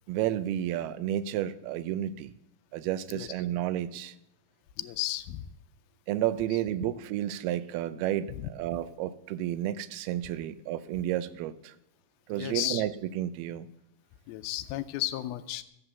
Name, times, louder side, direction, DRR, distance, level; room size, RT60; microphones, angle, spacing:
voice 1, 0.1-2.3 2.7-4.1 6.1-11.7 12.3-13.7, right 12 dB, 85° right, 14 dB, 2.6 m, -31 dB
voice 2, 4.8-5.5 8.4-8.5 12.4-12.8 14.3-15.6, left 14 dB, 80° left, 12 dB, 2.4 m, -33 dB
14.5 x 7.9 x 6.9 m, 0.82 s
omnidirectional pair, 4.5 m